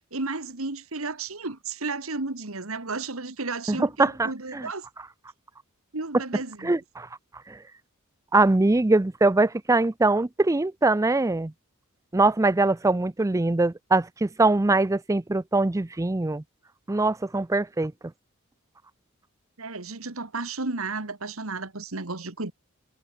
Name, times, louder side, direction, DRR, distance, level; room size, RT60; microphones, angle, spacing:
voice 1, 0.1-4.9 5.9-6.8 19.6-22.5, right 3 dB, 75° right, 2.1 m, -33 dB
voice 2, 3.7-4.7 6.6-7.1 7.5-7.6 8.3-11.5 12.1-16.4 16.9-17.9, right 2 dB, 15° right, 0.5 m, -22 dB
head